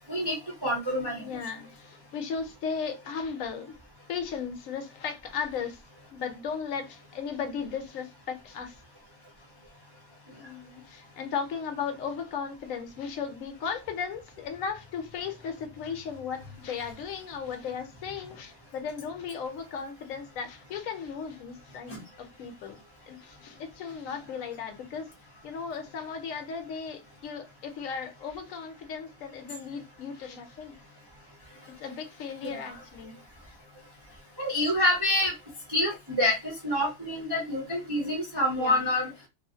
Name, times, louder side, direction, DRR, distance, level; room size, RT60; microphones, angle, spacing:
voice 1, 0.1-1.3 21.9-22.0 32.4-32.8 34.4-35.3 35.7-39.1, left 1 dB, 30° right, 0.5 m, -27 dB
voice 2, 1.2-3.8 4.1-5.8 6.1-8.8 10.4-22.8 23.1-25.1 25.4-30.7 31.7-33.2 34.6-34.7 38.6-38.8, left 6 dB, 70° left, 1.0 m, -36 dB
2.4 x 2.4 x 2.6 m
omnidirectional pair, 1.6 m